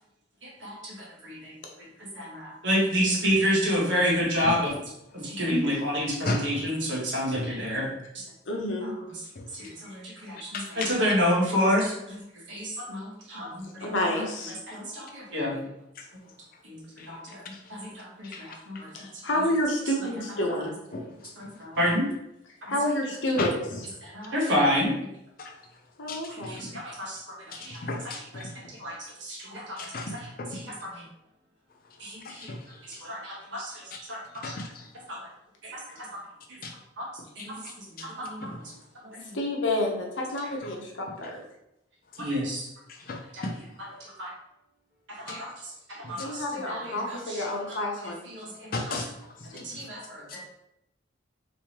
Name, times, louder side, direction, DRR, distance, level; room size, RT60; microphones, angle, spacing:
voice 1, 0.4-1.9 2.1-4.7 5.1-7.9 8.1-8.2 8.8-8.9 9.5-12.2 12.5-13.8 14.7-15.6 16.6-17.4 17.7-18.9 21.4-22.1 24.0-24.9 26.3-27.8 28.8-29.9 30.6-30.7 32.0-32.5 32.8-34.2 34.5-34.6 35.1-35.3 35.6-35.8 37.0-37.1 37.4-37.5 37.9-38.5 39.0-39.4 42.2-42.7 44.2-44.3 45.2-45.5 46.0-46.8 47.1-47.4 48.3-48.7 49.5-50.5, equal, 75° right, -4 dB, 1.3 m, -29 dB
voice 2, 5.5-5.8 8.4-8.9 13.8-14.6 18.9-20.7 22.7-23.5 26.0-26.6 35.9-36.0 39.2-41.4 46.2-48.3, left 1 dB, 80° left, 0 dB, 0.8 m, -29 dB
voice 3, 7.3-7.7 9.3-9.8 10.5-11.0 16.0-16.1 17.0-17.1 17.5-17.8 18.2-18.8 20.9-21.8 23.4-23.8 25.4-25.6 26.1-26.7 27.5-28.6 29.8-30.6 32.0-33.0 33.9-34.0 34.4-34.9 36.6-36.7 37.4-38.1 38.5-38.6 42.9-43.6 46.0-46.2 48.7-49.9 50.3-50.5, left 2 dB, 50° left, 2 dB, 0.5 m, -36 dB
3.4 x 3.1 x 2.9 m, 0.82 s
head